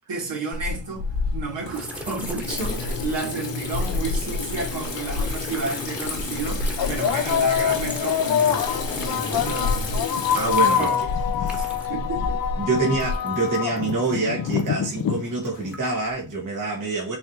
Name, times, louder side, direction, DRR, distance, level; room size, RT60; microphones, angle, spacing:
voice 1, 0.1-8.6 8.9-10.0 10.6-11.0 11.6-12.4, right 3 dB, 70° right, 2.5 m, -32 dB
Water tap faucet / Sink (filling or washing), 0.5-13.2, left 3 dB, 80° left, 1.3 m, -29 dB
sound 1, 1.7-12.1 12.3-14.9 15.4-16.2, equal, 5° right, 1.4 m, -39 dB
sound 2, 4.7-4.8 5.7-5.9 6.8-15.7, left 8 dB, 55° left, 0.6 m, -25 dB
voice 2, 10.3-10.9 11.4-11.7 12.6-17.2, right 3 dB, 45° right, 1.6 m, -26 dB
5.6 x 3.1 x 2.8 m
cardioid pair, 70°, 43 cm